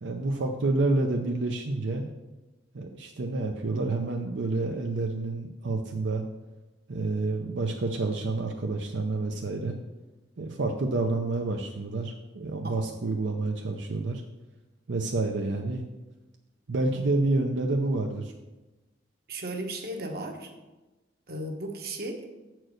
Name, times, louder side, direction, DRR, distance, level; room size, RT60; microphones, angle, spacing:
voice 1, 0.0-2.1 2.7-6.2 6.9-9.8 10.4-14.2 14.9-15.8 16.7-18.3, right 2 dB, 75° right, 3 dB, 0.6 m, -28 dB
voice 2, 19.3-20.5 21.3-22.3, right 1 dB, 55° right, 4 dB, 1.1 m, -35 dB
7.6 x 4.6 x 6.3 m, 1.1 s
head